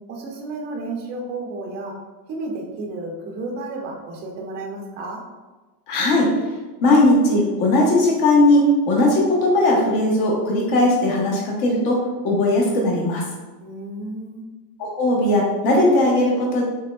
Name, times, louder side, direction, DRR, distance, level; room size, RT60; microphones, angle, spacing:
voice 1, 0.1-1.9 2.3-5.2 13.6-14.4, right 2 dB, 25° right, 0 dB, 0.4 m, -32 dB
voice 2, 5.9-6.3 6.8-13.2 14.8-16.6, left 1 dB, 50° left, -2 dB, 0.9 m, -18 dB
3.3 x 3.3 x 2.2 m, 1.2 s
supercardioid pair, 140°, 48 cm